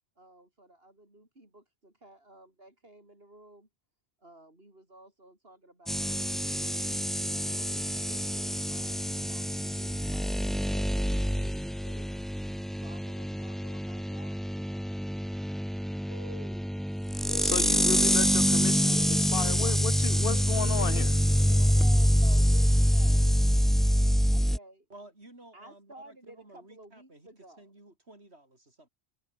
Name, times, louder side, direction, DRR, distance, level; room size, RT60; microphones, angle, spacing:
voice 1, 0.2-3.7 4.2-12.3 12.8-15.1 16.0-16.8 19.4-19.9 21.5-23.5 24.3-24.8 25.5-27.7, right 1 dB, 65° right, 7.0 m, -53 dB
sound 1, 5.9-24.6, equal, ahead, 0.6 m, -26 dB
voice 2, 17.2-21.5, left 7 dB, 60° left, 1.1 m, -34 dB
voice 3, 24.9-28.9, right 1 dB, 80° right, 6.4 m, -53 dB
omnidirectional pair, 1.1 m